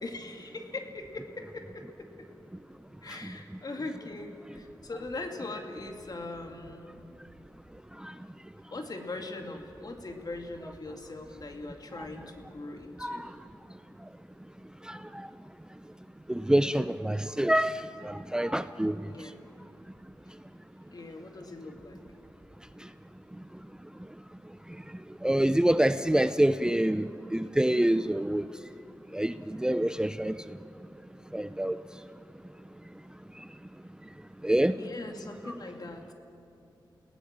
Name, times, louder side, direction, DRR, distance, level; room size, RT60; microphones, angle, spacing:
voice 1, 0.0-2.3 3.0-7.0 8.7-13.3 19.1-19.4 20.9-22.0 34.8-36.1, left 2 dB, 50° left, 4 dB, 2.4 m, -41 dB
voice 2, 14.9-15.3 16.3-19.1 25.2-28.5 29.1-30.4 31.3-31.8 34.4-34.7, right 1 dB, 10° right, 12 dB, 0.5 m, -26 dB
29.5 x 17.5 x 7.5 m, 2.8 s
wide cardioid pair, 75°, 8 cm